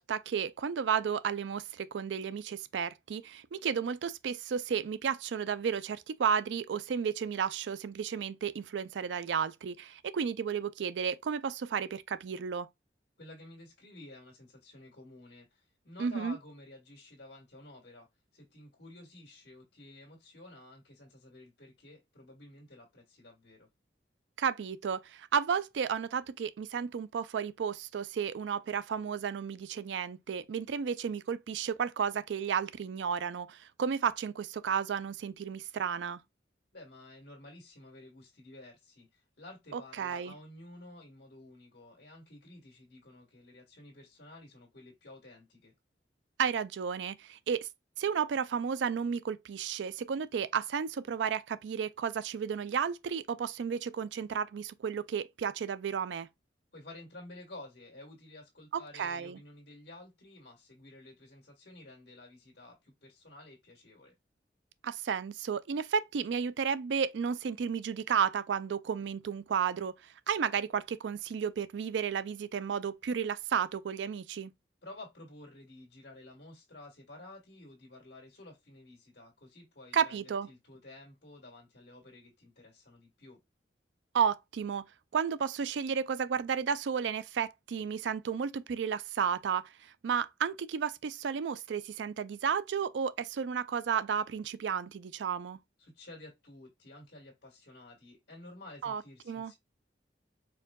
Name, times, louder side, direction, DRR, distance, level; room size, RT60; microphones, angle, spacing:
voice 1, 0.0-12.7 16.0-16.4 24.4-36.2 39.7-40.3 46.4-47.7 48.0-56.3 58.7-59.4 64.8-69.9 70.3-74.5 79.9-80.5 84.1-84.8 85.1-95.6 98.8-99.0 99.3-99.5, right 7 dB, 90° right, 0.4 m, -33 dB
voice 2, 13.2-23.7 36.7-45.7 56.7-64.1 74.8-83.4 95.8-99.5, left 2 dB, 65° left, 1.6 m, -52 dB
4.7 x 3.6 x 2.3 m
head